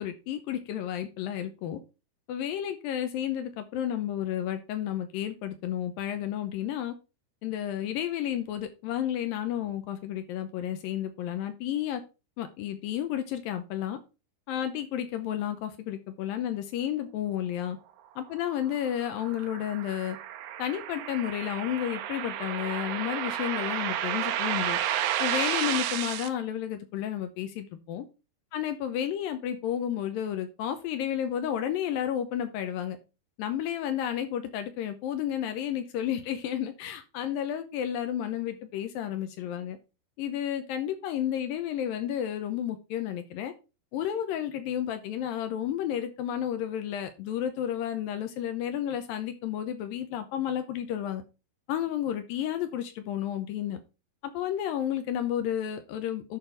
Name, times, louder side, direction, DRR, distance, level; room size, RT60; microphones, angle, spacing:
voice 1, 0.0-1.8 2.3-6.9 7.4-12.0 12.4-14.0 14.5-17.8 18.2-20.2 20.6-24.8 25.2-28.1 28.5-33.0 33.4-39.8 40.2-43.5 43.9-51.2 51.7-53.8 54.3-56.4, left 10 dB, 80° left, 2.3 m, -31 dB
sound 1, 18.5-26.3, right 11 dB, 80° right, 2.2 m, -32 dB
11.0 x 3.8 x 4.5 m
omnidirectional pair, 4.3 m